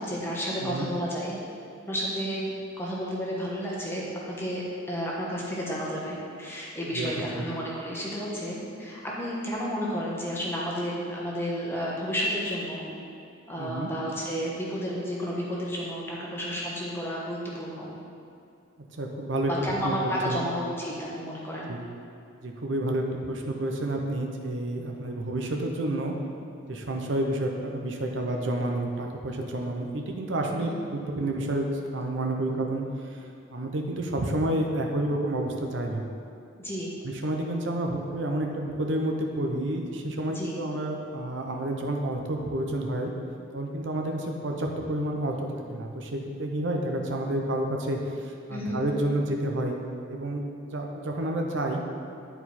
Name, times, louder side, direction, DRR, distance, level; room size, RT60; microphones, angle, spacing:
voice 1, 0.0-1.4 1.9-2.5 2.8-12.9 13.5-17.9 19.5-21.8 30.7-30.8 36.6-36.9 40.3-40.6 48.5-48.8, equal, 10° left, -5 dB, 1.2 m, -31 dB
voice 2, 13.6-13.9 18.9-19.5 19.8-20.4 21.7-21.8 22.4-26.1 26.7-36.0 37.0-43.1 43.5-49.8 50.1-50.4 50.7-51.8, right 1 dB, 60° right, 2 dB, 0.7 m, -30 dB
10.0 x 4.5 x 4.2 m, 2.6 s
head